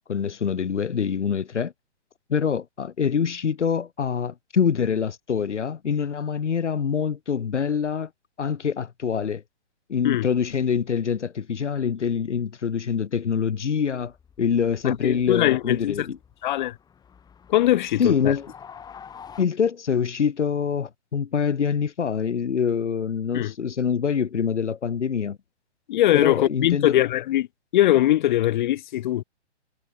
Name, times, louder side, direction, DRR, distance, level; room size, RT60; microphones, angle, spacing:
voice 1, 0.1-1.7 2.3-8.1 8.4-9.4 9.9-16.2 18.0-18.5 19.4-25.4 26.1-27.0, left 7 dB, 85° left, 1.1 m, -25 dB
sound 1, 14.0-19.5, left 7 dB, 10° left, 3.6 m, -48 dB
voice 2, 14.8-16.1 16.4-16.8 17.5-18.4 23.3-23.5 25.9-27.5 27.7-29.2, left 14 dB, 40° left, 1.6 m, -21 dB
hypercardioid pair, 135°, 35 cm